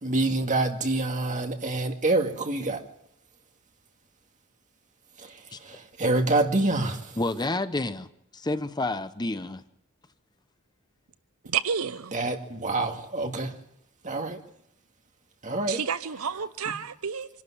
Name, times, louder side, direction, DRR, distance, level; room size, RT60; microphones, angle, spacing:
voice 1, 0.0-2.8 5.6-7.0 12.1-13.5 14.0-14.4 15.4-15.8, right 2 dB, 35° right, 2.1 m, -26 dB
voice 2, 7.2-9.6, left 2 dB, 20° left, 0.8 m, -30 dB
voice 3, 11.4-12.2 15.7-17.3, right 7 dB, 70° right, 0.8 m, -30 dB
25.5 x 12.5 x 9.9 m
head